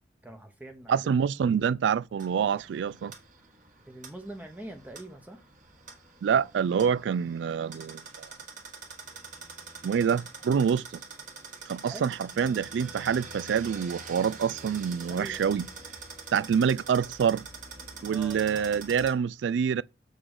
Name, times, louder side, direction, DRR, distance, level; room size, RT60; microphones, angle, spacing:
voice 1, 0.2-1.0 3.9-5.4 11.9-12.6 15.1-15.6 18.0-18.6, right 1 dB, 10° right, 0.8 m, -44 dB
voice 2, 0.9-3.1 6.2-8.3 9.8-10.8 11.7-15.7 16.3-17.5 18.0-19.8, right 7 dB, 80° right, 0.3 m, -26 dB
sound 1, 2.2-19.1, right 4 dB, 45° right, 1.5 m, -45 dB
8.1 x 3.7 x 4.9 m
head